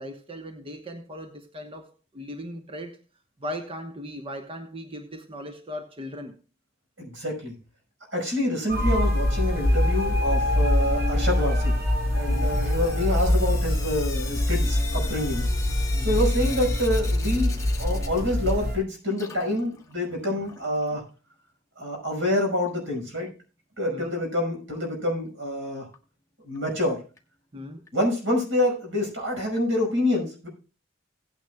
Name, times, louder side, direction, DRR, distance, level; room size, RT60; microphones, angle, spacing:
voice 1, 0.0-3.0 3.4-6.3 12.3-12.6 15.9-16.2 23.9-24.2 27.5-27.9, equal, 30° right, 1.1 m, -38 dB
voice 2, 7.0-7.6 8.1-11.8 12.1-15.5 16.0-21.1 21.8-23.3 23.8-25.9 26.4-27.0 27.9-30.5, left 1 dB, 90° right, 5.6 m, -27 dB
sound 1, 8.7-18.8, left 1 dB, 60° right, 6.1 m, -24 dB
Sink (filling or washing) / Drip, 12.1-18.8 19.1-21.0 22.2-22.3 22.6-22.7 22.9-23.0 25.9-26.0 26.5-26.6 27.2-27.3 27.9-28.0 28.6-28.7 29.6-29.7, left 5 dB, 15° left, 1.3 m, -41 dB
17.0 x 9.1 x 2.3 m
head